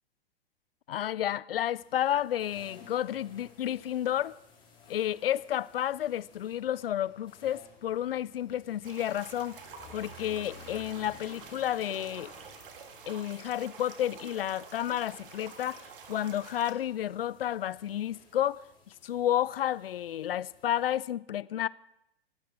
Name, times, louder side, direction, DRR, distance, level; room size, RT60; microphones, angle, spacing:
voice 1, 0.9-4.3 4.9-12.3 13.1-15.8 16.1-21.7, left 11 dB, 60° left, 0.5 m, -31 dB
sound 1, 1.8-21.0, left 3 dB, 15° left, 4.5 m, -56 dB
sound 2, 8.8-16.7, right 6 dB, 55° right, 2.0 m, -49 dB
27.5 x 12.0 x 3.6 m
figure-of-eight pair, 110°, 32 cm